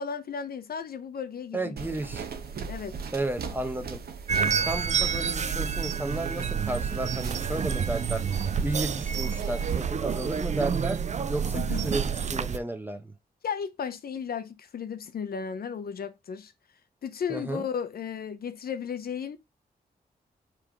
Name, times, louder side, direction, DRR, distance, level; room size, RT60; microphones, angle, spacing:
voice 1, 0.0-1.7 2.7-3.0 11.5-11.9 13.4-16.5 17.0-19.4, left 7 dB, 70° left, 0.7 m, -34 dB
voice 2, 1.5-2.2 3.1-4.0 4.4-8.2 8.6-11.0 11.3-12.0 12.3-13.1 17.3-17.6, right 2 dB, 10° right, 0.9 m, -33 dB
sound 1, 1.8-9.8, right 5 dB, 75° right, 0.9 m, -39 dB
sound 2, 4.3-12.6, right 7 dB, 45° right, 0.5 m, -29 dB
5.6 x 3.3 x 5.0 m
wide cardioid pair, 115°, 16 cm